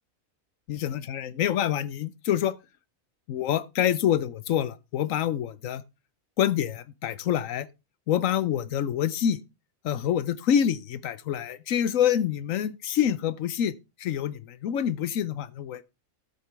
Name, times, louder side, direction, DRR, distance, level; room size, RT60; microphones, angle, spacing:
voice 1, 0.7-2.6 3.3-5.8 6.4-7.7 8.1-9.4 9.8-13.7 14.0-15.8, left 10 dB, 70° left, 1.1 m, -26 dB
13.0 x 7.6 x 3.3 m
omnidirectional pair, 1.5 m